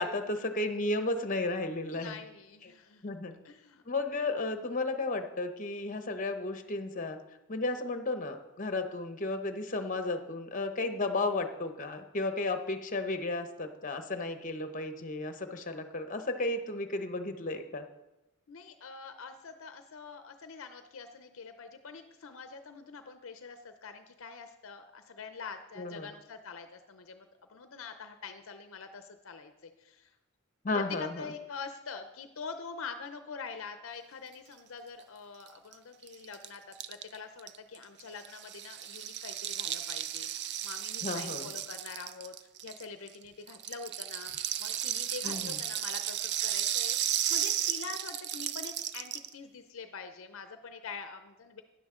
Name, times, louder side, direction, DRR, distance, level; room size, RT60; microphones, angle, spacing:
voice 1, 0.0-2.2 2.6-2.7 3.0-3.3 3.9-7.2 7.5-17.8 25.8-26.1 30.6-31.2 41.0-41.5 45.2-45.6, left 2 dB, 35° left, 7 dB, 0.9 m, -33 dB
voice 2, 1.9-3.1 3.4-3.8 18.5-30.1 30.7-42.3 42.6-44.3 44.6-51.6, left 5 dB, 60° left, 8 dB, 0.6 m, -45 dB
Rattle (instrument), 35.5-35.6 35.7-35.8 36.0-43.1 43.5-49.3, right 11 dB, 50° right, 0.4 m, -34 dB
12.5 x 10.0 x 3.7 m, 0.97 s
head